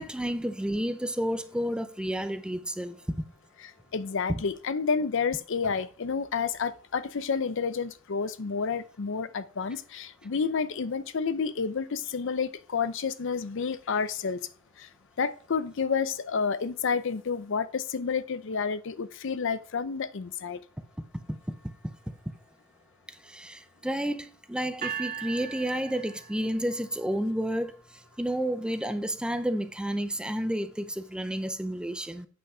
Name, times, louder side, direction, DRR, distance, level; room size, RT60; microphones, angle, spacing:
voice 1, 0.0-3.0 4.3-4.4 21.3-21.7 23.2-27.7 28.2-32.3, equal, 5° right, 0.6 m, -31 dB
voice 2, 3.6-14.5 14.8-14.9 15.2-20.6, left 5 dB, 65° left, 0.6 m, -30 dB
sound 1, 24.8-26.9, right 7 dB, 45° right, 2.2 m, -38 dB
8.7 x 5.6 x 4.9 m
head